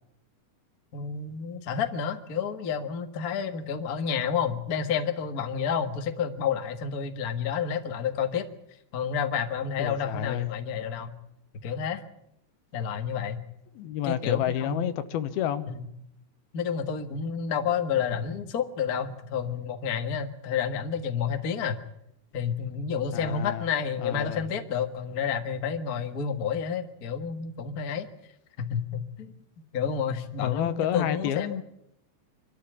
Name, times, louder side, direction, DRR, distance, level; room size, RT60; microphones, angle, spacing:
voice 1, 0.9-8.5 8.9-11.1 11.6-12.0 12.7-13.4 14.0-14.8 15.7-15.8 16.5-21.8 22.3-28.1 28.6-29.3 29.7-31.6, left 7 dB, 55° left, 6 dB, 1.0 m, -30 dB
voice 2, 9.8-10.5 13.8-15.6 23.1-23.7 24.0-24.6 30.4-31.6, left 10 dB, 85° left, 11 dB, 3.0 m, -30 dB
25.5 x 13.0 x 9.8 m, 0.79 s
omnidirectional pair, 4.3 m